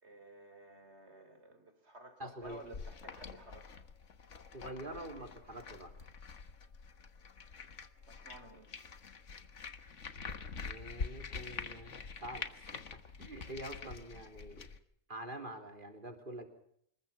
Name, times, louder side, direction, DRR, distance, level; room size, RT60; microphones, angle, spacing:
voice 1, 0.0-3.8 8.0-8.7, right 2 dB, 60° right, 8 dB, 4.1 m, -54 dB
voice 2, 2.2-2.6 4.5-6.0 10.6-12.8 13.2-14.7 15.1-16.4, right 1 dB, 40° right, 4 dB, 3.9 m, -46 dB
sound 1, 2.4-14.8, left 5 dB, 70° left, 1.6 m, -46 dB
26.0 x 21.5 x 5.9 m, 0.69 s
omnidirectional pair, 1.3 m